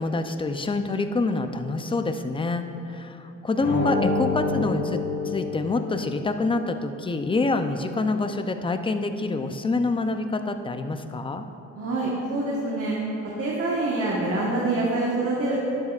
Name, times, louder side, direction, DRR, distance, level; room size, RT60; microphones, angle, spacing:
voice 1, 0.0-11.4, left 3 dB, 15° left, 8 dB, 0.5 m, -26 dB
sound 1, 3.5-6.3, left 3 dB, 90° left, 1.9 m, -27 dB
voice 2, 11.7-13.0 13.4-15.6, right 2 dB, 50° right, -4 dB, 1.4 m, -25 dB
11.5 x 8.2 x 2.4 m, 2.8 s
cardioid pair, 90°, 30 cm